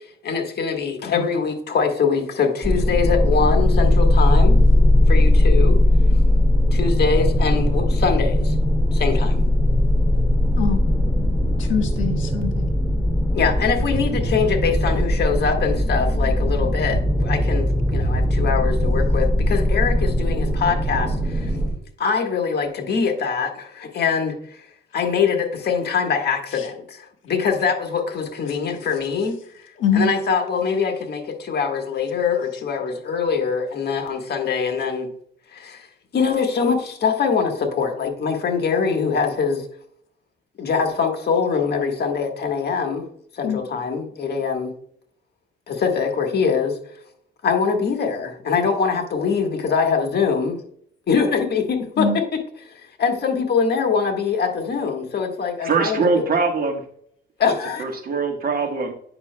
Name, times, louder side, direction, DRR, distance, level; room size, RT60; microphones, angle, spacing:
voice 1, 0.2-4.6 5.1-5.8 6.7-8.5 8.9-9.4 13.3-21.5 22.0-24.7 24.9-35.1 35.5-35.9 36.1-39.7 40.6-43.0 43.3-44.7 45.7-46.8 47.4-50.6 51.1-56.4 57.4-57.8, left 5 dB, 55° left, 3 dB, 1.4 m, -23 dB
sound 1, 2.6-21.7, left 1 dB, ahead, 1.8 m, -19 dB
voice 2, 11.6-12.7 26.5-26.7 28.5-28.6 29.8-30.1 43.4-43.6 52.0-52.2, left 6 dB, 80° left, 5 dB, 1.3 m, -23 dB
voice 3, 55.6-56.8 57.8-58.9, right 4 dB, 50° right, 4 dB, 1.4 m, -22 dB
8.6 x 5.8 x 2.2 m, 0.65 s
cardioid pair, 90°, 20 cm